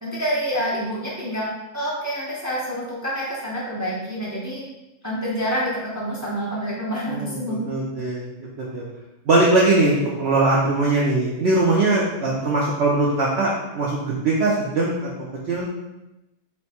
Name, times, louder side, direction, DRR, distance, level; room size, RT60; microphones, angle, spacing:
voice 1, 0.0-4.6 5.0-7.7, equal, 25° right, -6 dB, 0.3 m, -27 dB
voice 2, 7.1-8.3 8.6-8.8 9.3-15.1 15.5-15.7, right 2 dB, 60° right, -5 dB, 0.7 m, -21 dB
4.4 x 2.1 x 4.2 m, 0.98 s
omnidirectional pair, 1.6 m